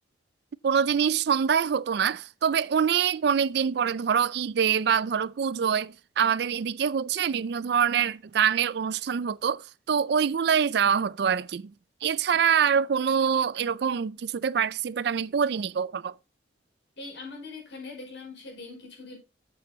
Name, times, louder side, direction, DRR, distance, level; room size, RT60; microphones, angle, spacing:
voice 1, 0.6-11.7 12.0-16.1, right 7 dB, 60° right, 0.4 m, -25 dB
voice 2, 17.0-19.2, left 3 dB, 65° left, 5.4 m, -41 dB
8.4 x 7.8 x 4.2 m
head